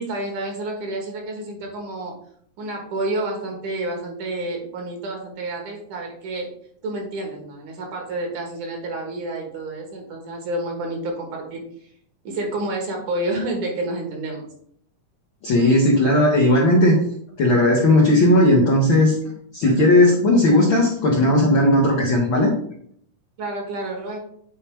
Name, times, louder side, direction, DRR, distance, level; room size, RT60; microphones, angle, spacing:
voice 1, 0.0-2.1 2.6-6.5 6.8-11.6 12.2-14.5 23.4-24.2, right 2 dB, 70° right, 1 dB, 2.8 m, -29 dB
voice 2, 15.4-17.0 17.4-19.1 19.5-22.5, left 1 dB, 65° left, -2 dB, 1.2 m, -16 dB
8.7 x 4.4 x 3.5 m, 0.63 s
omnidirectional pair, 3.8 m